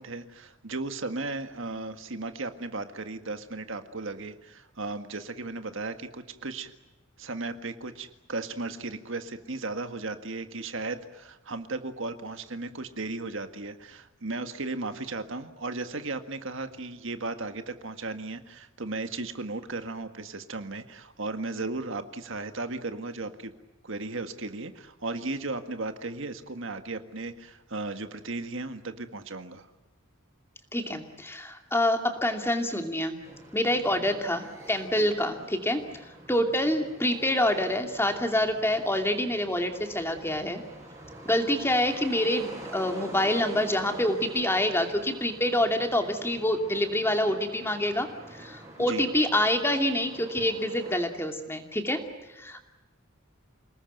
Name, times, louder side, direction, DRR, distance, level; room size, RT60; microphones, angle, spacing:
voice 1, 0.0-6.7 7.2-23.5 23.8-29.7 48.8-49.0, right 3 dB, 65° right, 8 dB, 1.7 m, -35 dB
voice 2, 30.7-33.2 33.5-35.8 36.3-40.6 41.2-52.0 52.3-52.6, left 1 dB, 10° left, 4 dB, 2.6 m, -26 dB
sound 1, 33.2-50.9, right 1 dB, 15° right, 5.9 m, -46 dB
28.5 x 20.0 x 9.2 m, 1.1 s
head